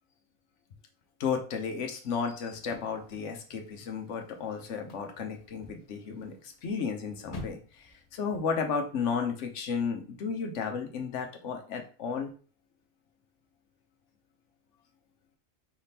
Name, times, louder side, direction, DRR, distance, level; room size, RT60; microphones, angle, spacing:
voice 1, 1.2-12.3, left 6 dB, 65° left, 4 dB, 1.1 m, -33 dB
sound 1, 2.5-8.4, left 2 dB, 45° left, 0.5 m, -49 dB
4.9 x 3.6 x 2.8 m, 0.38 s
omnidirectional pair, 1.4 m